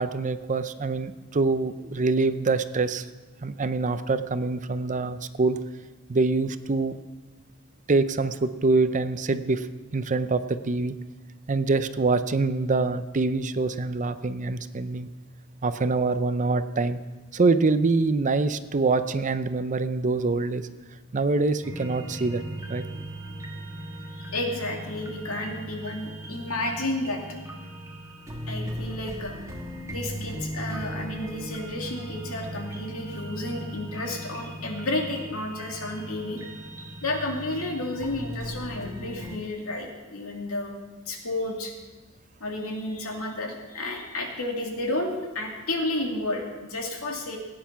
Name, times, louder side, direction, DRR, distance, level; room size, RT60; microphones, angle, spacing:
voice 1, 0.0-3.1 3.4-5.6 6.1-7.0 7.9-9.7 9.9-11.0 11.5-15.1 15.6-17.0 17.3-20.7 21.1-22.4 22.7-22.8, right 3 dB, 35° right, 12 dB, 0.5 m, -25 dB
sound 1, 21.6-39.4, right 1 dB, 15° right, 1.5 m, -38 dB
voice 2, 24.1-27.2 28.5-29.3 29.9-36.4 37.0-40.8 41.1-41.7 42.4-47.4, left 2 dB, 80° left, 1 dB, 2.5 m, -31 dB
16.5 x 9.4 x 5.8 m, 1.2 s
head